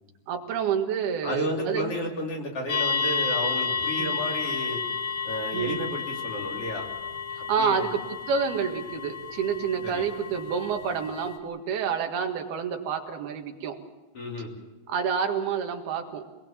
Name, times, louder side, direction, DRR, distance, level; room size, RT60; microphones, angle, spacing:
voice 1, 0.3-1.9 4.0-4.2 5.5-5.8 7.5-8.0 8.3-13.8 14.9-16.3, right 6 dB, 85° right, 3 dB, 3.8 m, -28 dB
voice 2, 1.2-4.8 5.2-6.9 7.6-7.9 9.8-10.1 14.1-14.5, equal, 40° left, 0 dB, 3.7 m, -32 dB
sound 1, 2.7-11.4, left 5 dB, 55° left, 2.7 m, -31 dB
26.0 x 20.5 x 7.3 m, 1.1 s
omnidirectional pair, 4.3 m